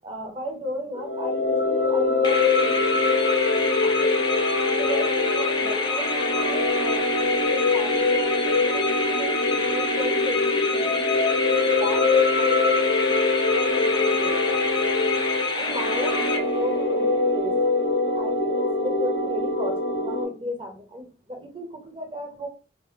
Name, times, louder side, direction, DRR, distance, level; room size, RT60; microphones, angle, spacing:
voice 1, 0.0-4.1 4.8-10.9 11.6-12.9 13.5-14.6 15.5-17.6 18.2-22.5, equal, 30° right, 2 dB, 0.6 m, -35 dB
sound 1, 0.9-20.2, left 3 dB, 60° left, 0.6 m, -23 dB
sound 2, 2.2-16.9, left 4 dB, 25° left, 0.3 m, -28 dB
2.2 x 2.0 x 3.7 m, 0.34 s
head